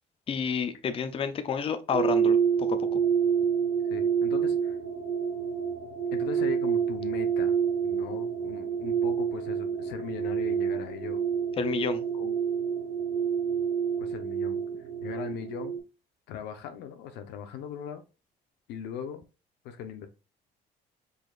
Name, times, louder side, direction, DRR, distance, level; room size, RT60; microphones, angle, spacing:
voice 1, 0.3-3.0 11.6-12.0, left 6 dB, 35° left, 0.6 m, -30 dB
sound 1, 1.9-15.8, right 7 dB, 65° right, 1.2 m, -28 dB
voice 2, 3.8-4.8 6.1-7.6 7.8-11.2 12.1-12.3 14.0-14.6 15.0-15.8 16.3-18.0 18.7-19.2 19.6-20.1, left 8 dB, 85° left, 0.9 m, -39 dB
5.0 x 4.0 x 2.4 m
cardioid pair, 110°, 17 cm